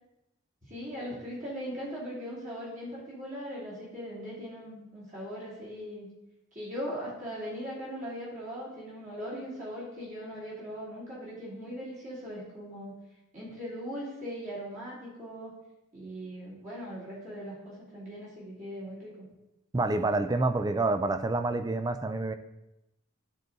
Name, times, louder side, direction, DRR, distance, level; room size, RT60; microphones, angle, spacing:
voice 1, 0.6-6.1 6.5-12.9 13.3-15.5 15.9-19.1, equal, 35° right, -7 dB, 2.9 m, -39 dB
voice 2, 19.7-22.3, right 2 dB, 20° right, 10 dB, 0.3 m, -28 dB
11.5 x 3.9 x 3.9 m, 0.92 s
head